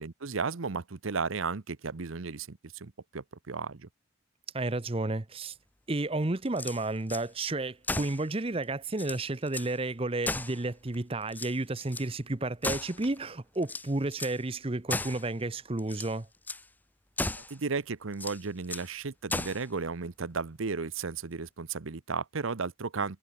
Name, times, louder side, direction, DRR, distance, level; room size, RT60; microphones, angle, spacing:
voice 1, 0.0-3.9 17.4-23.2, right 4 dB, 85° right, 0.9 m, -34 dB
voice 2, 4.5-5.6 5.9-16.3, right 2 dB, 30° right, 0.8 m, -32 dB
sound 1, 6.5-7.3 7.8-8.2 8.6-8.7 8.9-9.7 10.2-11.0 11.3-12.1 12.6-13.2 13.6-14.4 14.9-15.3 15.8-16.1 16.5-16.7 17.2-17.6 18.1-18.9 19.3-19.7, left 2 dB, 10° left, 0.8 m, -35 dB
head